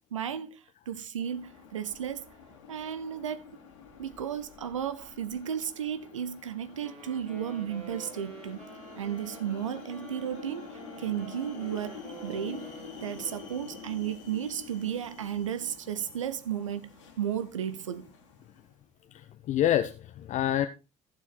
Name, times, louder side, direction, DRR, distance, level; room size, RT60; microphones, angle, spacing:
voice 1, 0.1-0.6 0.9-2.3 2.7-3.6 4.0-8.6 9.0-12.7 13.0-16.9 17.2-18.1, right 9 dB, 75° right, 0.8 m, -34 dB
sound 1, 1.2-18.7, left 6 dB, 75° left, 2.2 m, -48 dB
Wind instrument woodwind instrument, 6.8-14.2, right 4 dB, 45° right, 5.2 m, -49 dB
voice 2, 19.1-20.7, left 11 dB, 50° left, 0.8 m, -27 dB
15.0 x 6.8 x 4.3 m
figure-of-eight pair, 50°, 16 cm